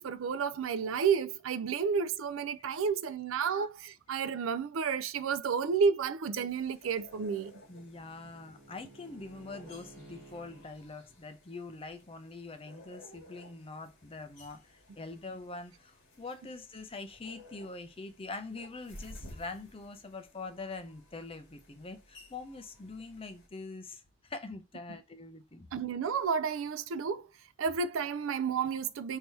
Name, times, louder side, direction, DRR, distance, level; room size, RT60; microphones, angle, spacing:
voice 1, 0.0-7.5 25.7-27.3 27.6-29.2, right 6 dB, 75° right, 0.4 m, -31 dB
sound 1, 6.5-23.5, left 1 dB, 55° left, 1.5 m, -56 dB
Bowed string instrument, 6.8-10.7, right 2 dB, 10° right, 1.3 m, -56 dB
voice 2, 7.7-25.7, left 3 dB, 25° left, 0.5 m, -44 dB
3.3 x 2.8 x 4.5 m
head